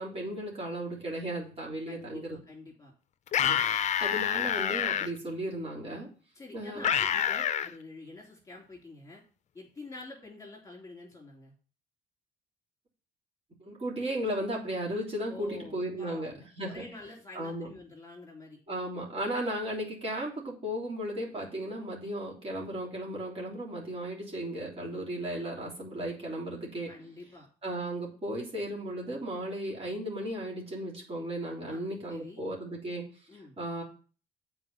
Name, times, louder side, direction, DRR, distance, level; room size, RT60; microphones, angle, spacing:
voice 1, 0.0-2.4 3.4-3.6 4.0-6.1 6.5-6.9 13.6-16.8 17.3-17.7 18.7-26.9 27.6-33.1 33.6-33.8, right 1 dB, 35° right, -2 dB, 3.2 m, -35 dB
voice 2, 1.9-2.9 6.3-9.2 9.5-11.5 15.3-18.6 26.8-27.5 31.7-32.4 33.3-33.6, left 2 dB, 20° left, -2 dB, 3.3 m, -47 dB
sound 1, 3.3-5.1 6.8-7.7, left 9 dB, 45° left, 0.6 m, -27 dB
7.7 x 4.5 x 6.7 m, 0.38 s
cardioid pair, 110°, 17 cm